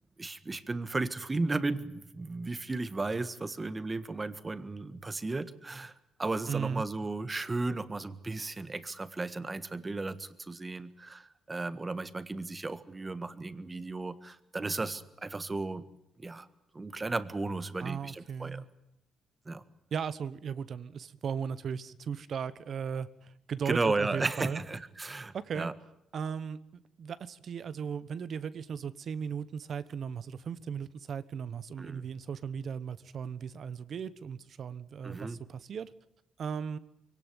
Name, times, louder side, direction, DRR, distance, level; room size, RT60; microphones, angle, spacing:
voice 1, 0.2-15.8 16.2-16.5 16.7-18.6 19.4-19.6 23.6-25.7 31.8-32.1 35.0-35.4, right 3 dB, 25° right, 12 dB, 1.6 m, -34 dB
voice 2, 6.5-6.8 17.8-18.6 19.9-24.6 25.3-25.7 26.1-35.9 36.4-36.8, right 7 dB, 55° right, 15 dB, 1.1 m, -37 dB
23.5 x 18.0 x 9.3 m, 0.82 s
cardioid pair, 90°, 0 cm